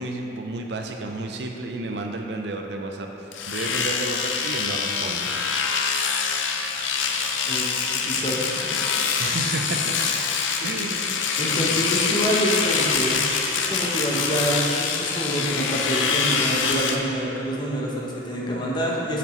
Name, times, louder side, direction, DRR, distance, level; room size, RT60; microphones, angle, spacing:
voice 1, 0.0-5.3 9.2-9.9 10.6-11.0, right 2 dB, 60° right, 3 dB, 0.5 m, -31 dB
Domestic sounds home sounds, 3.3-17.0, left 5 dB, 85° left, 0.5 m, -25 dB
voice 2, 7.5-8.7 11.4-13.2 13.6-19.2, right 1 dB, 25° left, -4 dB, 0.8 m, -27 dB
7.2 x 5.9 x 3.0 m, 3.0 s
head